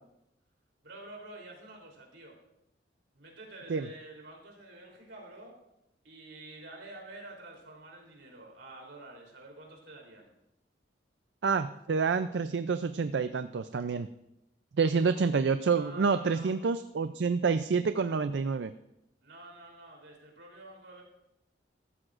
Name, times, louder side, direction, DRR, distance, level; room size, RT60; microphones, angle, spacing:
voice 1, 0.8-2.4 3.1-5.6 6.0-10.3 15.7-16.5 19.2-21.0, right 2 dB, 85° right, 0 dB, 3.4 m, -49 dB
voice 2, 11.4-14.1 14.8-18.7, right 5 dB, 70° right, 11 dB, 0.4 m, -28 dB
14.5 x 14.0 x 2.5 m, 0.83 s
head